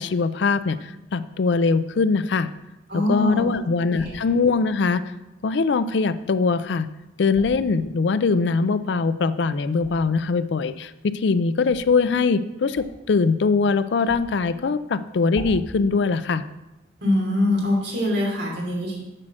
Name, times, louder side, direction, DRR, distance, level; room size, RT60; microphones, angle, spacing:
voice 1, 0.0-2.5 2.9-5.0 5.4-6.9 7.2-16.4, left 4 dB, 65° left, 13 dB, 0.4 m, -22 dB
voice 2, 2.9-3.5 3.8-4.1 17.0-19.0, left 1 dB, 60° right, -2 dB, 3.0 m, -23 dB
sound 1, 3.9-4.2 7.2-7.6 9.7-10.2 11.6-11.8 12.7-13.1 13.4-13.5 14.0-14.5 15.2-15.7, equal, 20° left, 1.7 m, -40 dB
7.5 x 6.3 x 6.2 m, 0.97 s
head